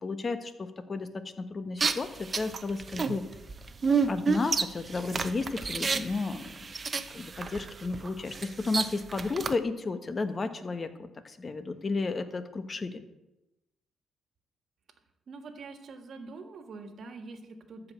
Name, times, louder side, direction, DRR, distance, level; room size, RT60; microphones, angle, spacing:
voice 1, 0.0-1.1 1.4-3.2 4.1-6.5 7.1-13.0, left 3 dB, 35° left, 9 dB, 1.2 m, -33 dB
sound 1, 1.8-9.5, right 5 dB, 35° right, 0.8 m, -30 dB
voice 2, 15.3-17.9, right 3 dB, 55° right, 7 dB, 1.6 m, -44 dB
13.5 x 5.2 x 7.7 m, 0.95 s
cardioid pair, 90°, 0 cm